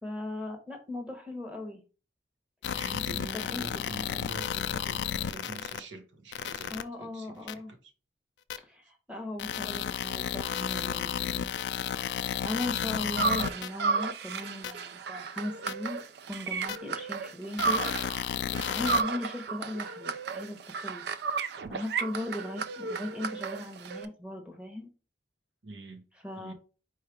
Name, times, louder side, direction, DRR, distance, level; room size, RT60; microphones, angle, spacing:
voice 1, 0.0-1.8 3.3-3.8 6.7-7.7 8.6-11.5 12.4-16.0 16.3-17.9 18.7-20.6 20.8-21.0 21.7-24.9 26.2-26.5, left 1 dB, 5° right, 0.9 m, -38 dB
sound 1, 2.6-5.8 6.3-6.8 7.5-7.6 8.5-8.6 9.4-13.7 14.6-14.7 15.7-15.8 16.7-16.8 17.6-19.0, left 9 dB, 65° left, 0.3 m, -32 dB
voice 2, 2.7-7.9 25.6-26.0 26.4-26.5, right 3 dB, 80° right, 0.9 m, -45 dB
sound 2, 13.2-18.2 18.5-24.1, right 5 dB, 60° right, 0.3 m, -33 dB
4.5 x 2.4 x 4.5 m
head